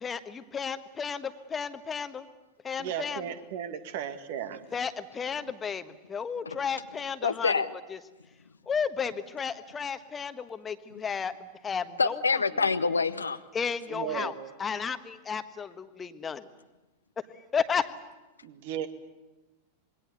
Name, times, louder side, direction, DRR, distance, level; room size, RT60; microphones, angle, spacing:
voice 1, 0.0-2.2 2.6-3.2 4.7-5.8 6.1-7.5 8.7-11.3 11.6-12.1 13.5-14.3 14.6-16.4 17.5-17.9, left 6 dB, 20° left, 11 dB, 1.3 m, -33 dB
voice 2, 2.8-4.6 13.9-14.4 18.4-18.9, right 9 dB, 50° right, 9 dB, 2.0 m, -35 dB
voice 3, 7.2-7.7 10.9-11.0 12.0-13.4, left 4 dB, 75° left, 10 dB, 0.9 m, -26 dB
26.5 x 22.0 x 8.3 m, 1.1 s
figure-of-eight pair, 90°, 0 cm